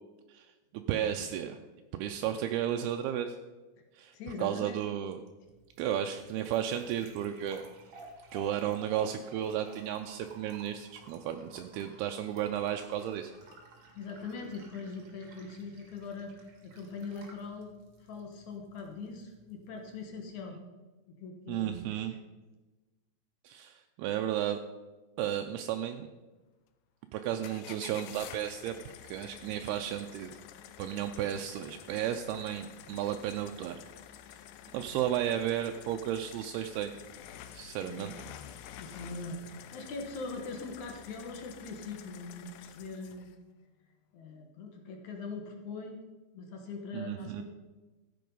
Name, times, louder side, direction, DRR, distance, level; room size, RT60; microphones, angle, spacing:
voice 1, 0.7-1.6 1.9-3.4 3.9-5.2 5.8-7.7 8.3-13.3 21.5-22.2 23.4-24.6 25.2-26.1 27.1-28.8 29.0-30.4 30.8-33.8 34.7-36.9 37.5-38.1 46.9-47.4, right 10 dB, 80° right, 6 dB, 2.3 m, -33 dB
voice 2, 4.1-4.8 13.9-16.4 16.6-17.7 18.0-20.6 21.1-21.9 37.8-38.0 38.8-43.3 44.1-46.0 46.3-47.4, left 3 dB, 65° left, 3 dB, 2.0 m, -41 dB
sound 1, 5.4-20.4, right 2 dB, 45° right, 2.2 m, -55 dB
sound 2, 27.4-43.4, left 10 dB, 90° left, 2.0 m, -50 dB
14.5 x 8.5 x 5.4 m, 1.2 s
omnidirectional pair, 5.0 m